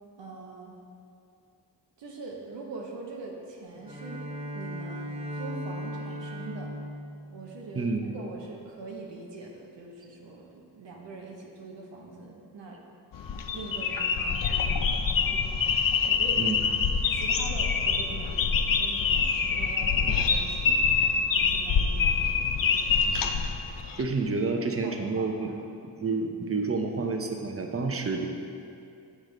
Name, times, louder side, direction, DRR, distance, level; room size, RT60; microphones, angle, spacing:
voice 1, 0.2-0.7 2.0-4.2 4.5-6.8 7.3-12.8 13.5-15.4 16.0-16.6 17.1-20.8 21.3-23.1 24.8-25.3, right 3 dB, 85° right, -1 dB, 0.8 m, -43 dB
Bowed string instrument, 3.8-8.3, left 1 dB, 15° right, 1.1 m, -38 dB
voice 2, 7.7-8.1 16.4-16.7 23.1-23.3 24.0-25.5 26.0-28.3, right 3 dB, 35° right, 4 dB, 0.7 m, -29 dB
sound 1, 13.1-24.0, left 5 dB, 55° left, 0.5 m, -25 dB
6.5 x 4.8 x 3.8 m, 2.5 s
cardioid pair, 45°, 42 cm